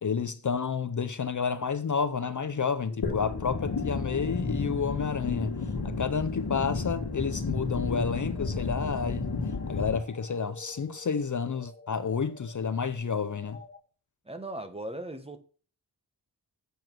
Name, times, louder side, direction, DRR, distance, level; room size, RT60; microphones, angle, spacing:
voice 1, 0.0-5.5 5.8-9.3 9.7-13.6, left 6 dB, 50° left, 0.6 m, -30 dB
sound 1, 2.1-13.8, left 4 dB, 25° left, 1.3 m, -49 dB
sound 2, 3.0-10.0, left 3 dB, 70° left, 1.7 m, -32 dB
voice 2, 14.2-15.4, right 1 dB, 15° right, 1.1 m, -38 dB
7.7 x 7.1 x 6.0 m
wide cardioid pair, 100°, 40 cm